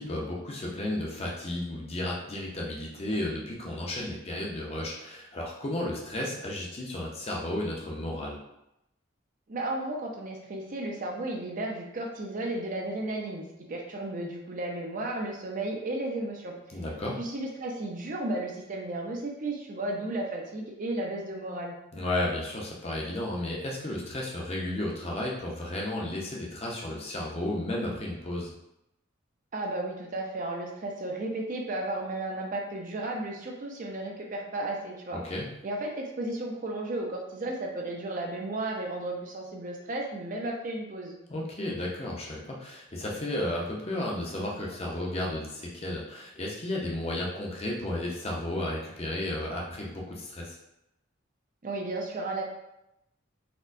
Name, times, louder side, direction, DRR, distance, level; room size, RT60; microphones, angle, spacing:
voice 1, 0.0-8.4 16.7-17.2 21.9-28.5 35.2-35.5 41.3-50.6, left 1 dB, 30° left, -2 dB, 0.6 m, -33 dB
voice 2, 9.5-16.8 17.2-21.7 29.5-35.2 35.6-41.2 51.6-52.4, right 2 dB, 40° right, 0 dB, 0.5 m, -34 dB
4.2 x 2.1 x 2.5 m, 0.85 s
head